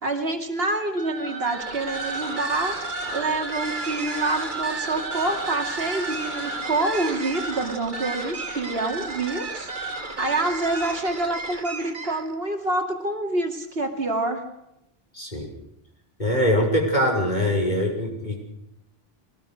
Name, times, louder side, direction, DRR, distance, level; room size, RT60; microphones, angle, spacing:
voice 1, 0.0-2.8 3.1-9.7 10.0-14.4, right 2 dB, 75° right, 4 dB, 2.8 m, -27 dB
sound 1, 0.9-12.3, right 3 dB, 50° right, 2.0 m, -32 dB
voice 2, 15.1-15.5 16.2-18.4, equal, 45° left, 0 dB, 5.8 m, -23 dB
23.0 x 18.5 x 6.5 m, 0.82 s
omnidirectional pair, 1.0 m